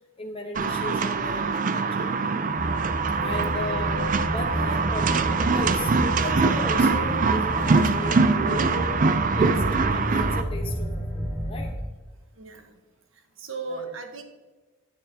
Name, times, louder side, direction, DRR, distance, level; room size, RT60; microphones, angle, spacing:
voice 1, 0.2-2.1 3.2-4.0 4.3-9.0 9.4-9.6 9.9-11.7 13.7-13.9, left 1 dB, 25° left, 1 dB, 1.0 m, -36 dB
sound 1, 0.5-10.4, right 4 dB, 40° right, 0.4 m, -23 dB
sound 2, 2.5-11.7, equal, 15° right, 1.7 m, -30 dB
voice 2, 12.4-12.7 13.4-14.2, right 4 dB, 75° right, 6 dB, 1.2 m, -36 dB
10.5 x 9.5 x 2.8 m, 1.2 s
head